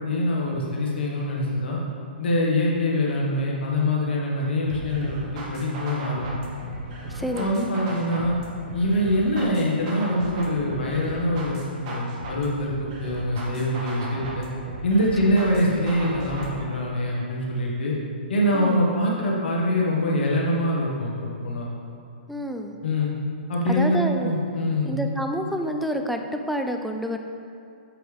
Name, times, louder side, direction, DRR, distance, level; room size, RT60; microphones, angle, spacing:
voice 1, 0.0-1.8 2.2-5.2 5.5-6.3 7.3-8.4 8.7-14.5 14.8-17.9 18.3-21.6 22.8-23.1 23.5-24.9, left 1 dB, 70° left, -3 dB, 1.4 m, -24 dB
sound 1, 4.7-16.7, right 1 dB, 40° right, 1.2 m, -36 dB
voice 2, 7.1-7.7 18.5-18.8 22.3-22.8 23.7-24.3 24.8-27.2, equal, ahead, 4 dB, 0.3 m, -28 dB
7.7 x 4.8 x 3.4 m, 2.5 s
hypercardioid pair, 140°, 6 cm